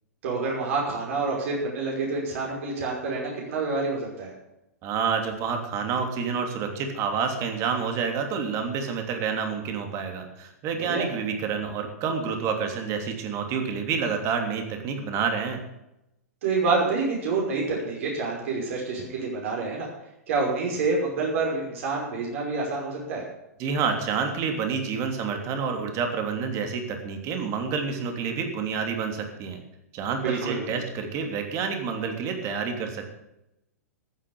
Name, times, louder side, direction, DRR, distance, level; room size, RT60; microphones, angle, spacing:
voice 1, 0.2-4.3 10.9-11.1 16.4-19.9 20.3-23.2 30.2-30.8, right 3 dB, 55° right, -2 dB, 5.6 m, -27 dB
voice 2, 4.8-15.6 23.6-29.6 29.9-33.1, right 6 dB, 35° right, 5 dB, 3.1 m, -28 dB
14.5 x 8.8 x 7.0 m, 0.87 s
figure-of-eight pair, 110°, 8 cm